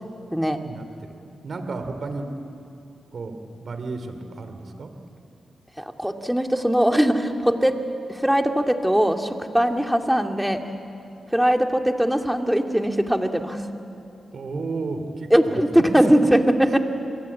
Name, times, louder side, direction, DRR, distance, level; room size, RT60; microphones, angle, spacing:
voice 1, 0.6-1.1 1.4-2.3 3.1-3.3 3.6-4.9 14.3-15.6, right 3 dB, 60° right, 7 dB, 3.4 m, -32 dB
voice 2, 5.8-7.8 8.1-10.6 11.3-13.6 15.3-16.8, equal, 5° right, 4 dB, 2.4 m, -20 dB
27.5 x 21.5 x 8.6 m, 2.7 s
supercardioid pair, 45°, 0 cm